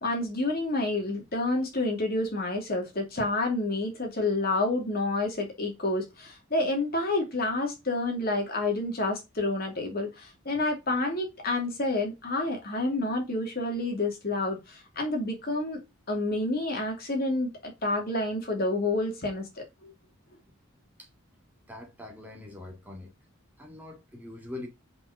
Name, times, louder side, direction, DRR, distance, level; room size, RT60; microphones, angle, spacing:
voice 1, 0.0-15.8 16.1-19.5 19.8-19.9, left 2 dB, 45° left, 2.7 m, -29 dB
voice 2, 21.7-23.1 23.6-24.7, left 2 dB, 10° right, 1.9 m, -43 dB
5.9 x 5.5 x 6.6 m
head